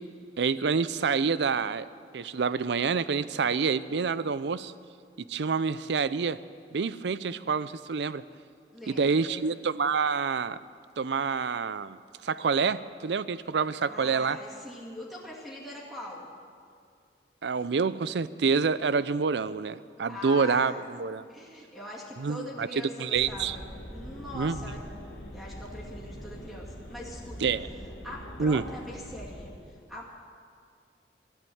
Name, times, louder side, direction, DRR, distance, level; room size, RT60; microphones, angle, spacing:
voice 1, 0.4-1.9 2.1-4.7 5.3-6.4 6.7-8.2 9.0-10.6 11.0-14.4 17.4-21.2 22.2-22.7 23.0-23.6 24.3-24.6 27.4-27.7 28.4-28.6, right 5 dB, 75° right, 16 dB, 0.5 m, -27 dB
voice 2, 8.7-9.6 13.9-16.3 20.1-20.9 21.3-24.8 25.3-27.5 28.0-30.1, left 1 dB, ahead, -7 dB, 2.4 m, -42 dB
sound 1, 23.1-29.5, equal, 80° left, 2.3 m, -43 dB
14.5 x 12.0 x 7.9 m, 2.2 s
head